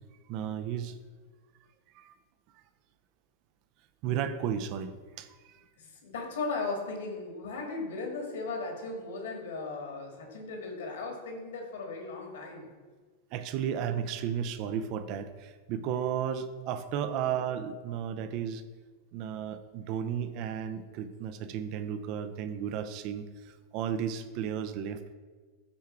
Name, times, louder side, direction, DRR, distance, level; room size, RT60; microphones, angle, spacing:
voice 1, 0.3-1.0 1.9-2.1 4.0-5.6 13.3-18.6 19.1-25.1, right 8 dB, 40° right, 10 dB, 0.6 m, -34 dB
voice 2, 5.8-12.7, left 3 dB, 60° left, 1 dB, 2.2 m, -37 dB
13.0 x 4.7 x 4.5 m, 1.4 s
figure-of-eight pair, 90°, 0 cm